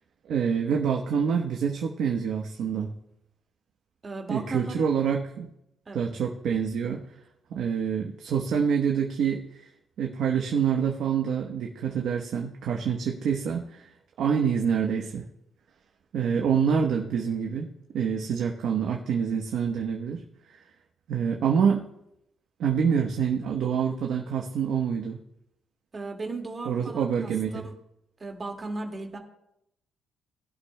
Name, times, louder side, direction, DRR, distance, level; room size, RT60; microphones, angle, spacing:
voice 1, 0.2-2.9 4.3-5.5 5.9-7.0 7.5-9.7 10.0-13.9 14.2-15.2 16.1-17.7 17.9-20.2 20.5-20.6 21.1-21.9 22.6-25.2 26.7-27.6, right 7 dB, 75° right, 0 dB, 1.0 m, -26 dB
voice 2, 4.0-4.9 5.9-6.0 25.9-27.6 28.2-29.2, right 3 dB, 30° right, 3 dB, 2.0 m, -36 dB
20.5 x 11.5 x 2.2 m, 0.81 s
cardioid pair, 90°, 0 cm